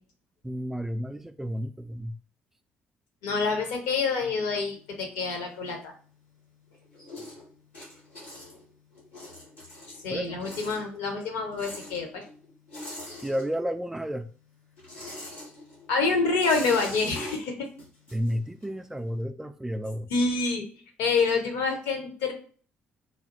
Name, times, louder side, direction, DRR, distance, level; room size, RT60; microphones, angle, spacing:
voice 1, 0.4-2.1 7.2-7.3 10.1-10.4 13.2-14.3 18.1-20.1, equal, 5° right, 0.4 m, -31 dB
voice 2, 3.2-5.9 10.0-12.2 15.9-17.7 20.1-20.6 21.0-22.3, left 4 dB, 70° left, 0.8 m, -27 dB
sound 1, 4.7-6.3 6.7-13.9 14.2-18.9, left 1 dB, 90° left, 1.4 m, -43 dB
4.1 x 2.0 x 3.0 m
figure-of-eight pair, 45°, 6 cm